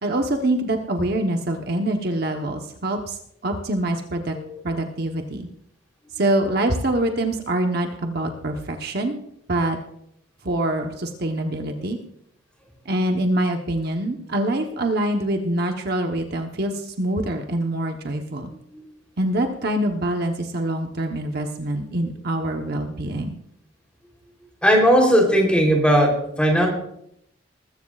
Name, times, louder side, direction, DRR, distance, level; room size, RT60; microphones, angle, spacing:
voice 1, 0.0-4.3 4.6-5.5 6.1-9.2 9.5-9.8 10.4-12.0 12.8-18.5 19.2-23.4, right 1 dB, 50° right, 4 dB, 1.0 m, -25 dB
voice 2, 24.6-26.1 26.4-26.7, equal, 5° left, 0 dB, 3.3 m, -17 dB
20.0 x 15.0 x 2.4 m, 0.74 s
head